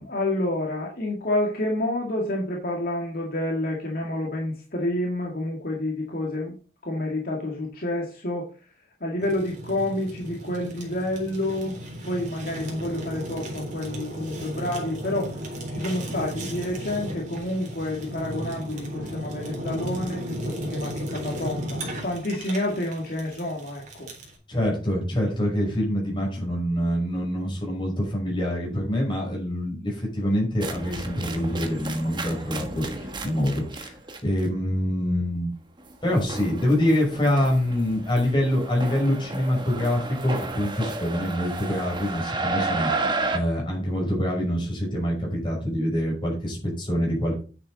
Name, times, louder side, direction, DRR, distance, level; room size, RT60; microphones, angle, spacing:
voice 1, 0.0-6.5 6.8-8.5 9.0-11.8 12.0-15.3 15.7-24.1, left 1 dB, 55° left, -1 dB, 2.1 m, -29 dB
Fire, 9.2-24.4, equal, 45° right, 3.7 m, -35 dB
voice 2, 24.5-33.9 34.2-35.5 36.0-42.9 43.3-47.4, equal, 30° left, -1 dB, 5.7 m, -25 dB
sound 1, 30.6-34.4 35.8-43.4, right 3 dB, 25° right, 1.3 m, -32 dB
9.9 x 7.4 x 4.1 m, 0.37 s
head